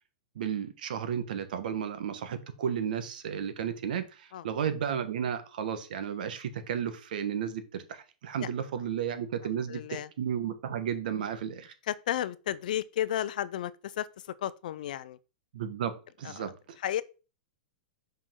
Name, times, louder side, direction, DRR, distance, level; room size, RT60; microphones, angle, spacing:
voice 1, 0.3-11.7 15.5-16.8, right 8 dB, 65° right, 1.2 m, -33 dB
voice 2, 9.7-10.1 11.9-14.1 14.4-15.2 16.2-16.5 16.8-17.0, left 12 dB, 60° left, 0.5 m, -33 dB
5.6 x 5.0 x 3.7 m
supercardioid pair, 165°, 5 cm